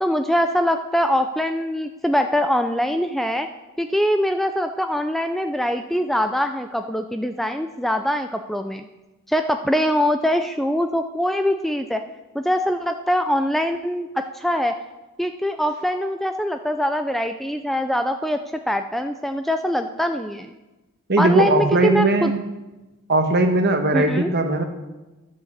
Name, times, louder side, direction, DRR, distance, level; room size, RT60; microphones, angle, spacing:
voice 1, 0.0-3.5 3.8-8.9 9.3-12.0 12.3-14.7 15.2-18.4 18.7-20.5 21.2-22.3 23.9-24.3, equal, ahead, 7 dB, 0.3 m, -23 dB
voice 2, 21.1-22.4 23.1-24.6, right 2 dB, 50° right, 5 dB, 1.2 m, -19 dB
10.5 x 6.6 x 7.2 m, 1.1 s
head